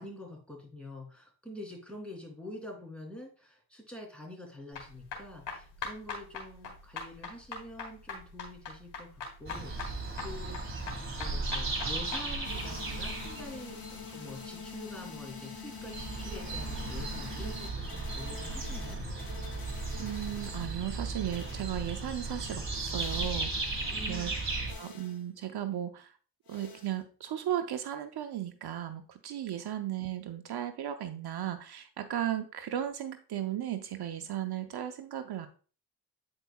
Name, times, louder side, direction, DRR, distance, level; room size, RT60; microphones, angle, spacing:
voice 1, 0.0-10.8 11.1-19.0 23.9-24.3, left 1 dB, 5° left, 0 dB, 3.1 m, -46 dB
sound 1, 4.7-12.3, left 5 dB, 90° left, 1.8 m, -41 dB
sound 2, 9.5-14.9 15.4-15.5 15.7-24.7, right 3 dB, 30° right, 1.9 m, -36 dB
sound 3, 12.4-20.8 21.3-21.7 23.0-23.4 24.7-25.2 26.5-26.9, left 5 dB, 60° left, 1.6 m, -46 dB
voice 2, 20.0-24.3 24.7-26.1 26.5-35.5, right 11 dB, 65° right, 8 dB, 0.7 m, -36 dB
8.8 x 4.7 x 2.3 m, 0.39 s
cardioid pair, 65°, 41 cm